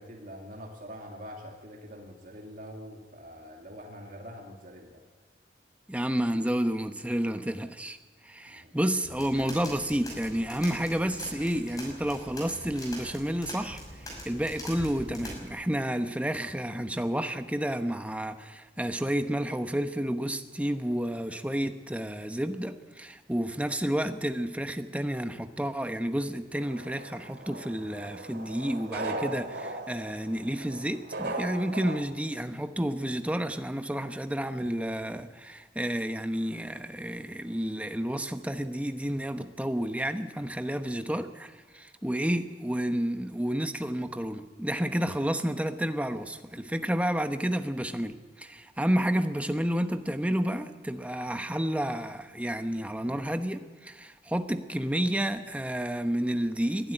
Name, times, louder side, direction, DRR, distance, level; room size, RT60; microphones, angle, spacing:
voice 1, 0.0-5.0 8.5-8.8, equal, 50° right, 0 dB, 2.3 m, -44 dB
voice 2, 5.9-8.0 8.2-13.8 14.2-56.9, equal, 10° right, 8 dB, 1.0 m, -30 dB
sound 1, 9.0-15.5, equal, 20° left, 6.0 m, -43 dB
sound 2, 26.6-32.0, right 2 dB, 70° right, 2.3 m, -38 dB
22.0 x 12.0 x 9.9 m, 1.3 s
head